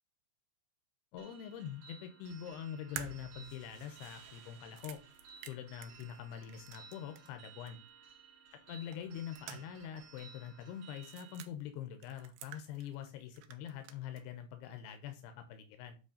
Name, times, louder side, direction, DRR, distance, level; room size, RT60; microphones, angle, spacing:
voice 1, 1.1-5.0 5.5-7.8 8.7-16.0, left 9 dB, 90° left, 7 dB, 2.7 m, -44 dB
sound 1, 1.2-11.5, right 6 dB, 60° right, 2.4 m, -57 dB
sound 2, 3.0-7.4 7.7-7.8 8.9-9.9 10.2-10.3 11.0-11.5 12.0-13.1 13.4-14.2, right 11 dB, 80° right, 2.4 m, -50 dB
sound 3, 3.2-6.2, right 4 dB, 40° right, 1.9 m, -64 dB
8.2 x 3.1 x 4.9 m, 0.33 s
omnidirectional pair, 4.5 m